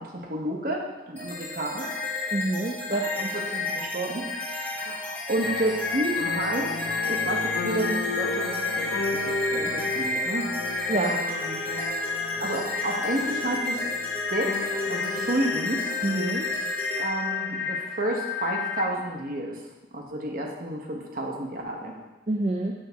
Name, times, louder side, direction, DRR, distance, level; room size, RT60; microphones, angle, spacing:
voice 1, 0.0-1.9 2.9-3.0 3.3-10.5 10.9-11.6 12.4-13.9 14.3-15.9 17.0-19.6 19.9-21.9, right 1 dB, 50° right, 0 dB, 1.0 m, -31 dB
sound 1, 1.2-18.8, left 3 dB, 10° left, 1.0 m, -30 dB
voice 2, 2.3-3.4 10.9-11.1 16.0-16.5 22.3-22.7, right 2 dB, 35° right, 1 dB, 0.4 m, -27 dB
sound 2, 5.4-16.7, left 2 dB, 60° left, 0.6 m, -35 dB
6.3 x 6.1 x 3.5 m, 1.1 s
head